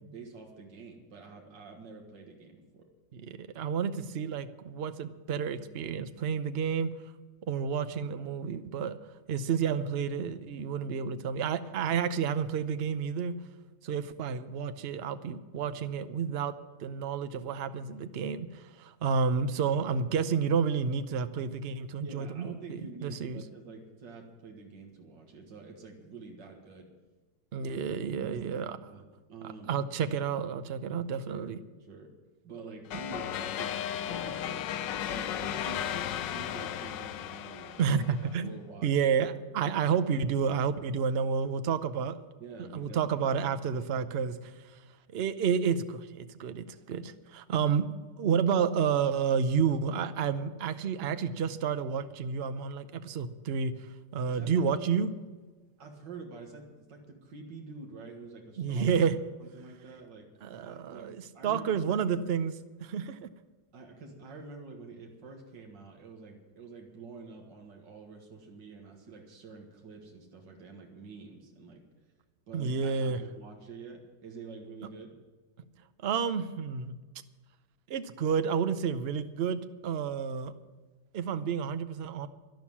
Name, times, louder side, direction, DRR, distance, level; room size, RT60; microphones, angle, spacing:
voice 1, 0.0-2.9 22.0-26.9 28.1-29.0 29.3-29.7 31.1-32.1 32.4-38.0 38.4-38.9 42.4-43.5 54.3-55.0 55.8-59.0 59.4-60.3 60.6-61.9 63.7-71.8 72.5-75.1, right 4 dB, 80° right, 1 dB, 2.3 m, -47 dB
voice 2, 3.1-7.0 7.5-9.0 9.3-13.3 13.8-16.5 16.8-23.4 27.5-28.8 29.7-31.6 37.8-38.5 38.8-42.2 42.7-44.5 45.1-47.9 48.2-53.7 54.1-55.1 58.6-59.2 60.4-63.2 72.5-73.2 76.0-76.9 77.9-80.5 81.1-82.3, right 6 dB, 60° right, 11 dB, 0.6 m, -30 dB
sound 1, 32.9-38.4, left 10 dB, 80° left, 1.4 m, -35 dB
11.5 x 11.5 x 7.3 m, 1.3 s
omnidirectional pair, 1.9 m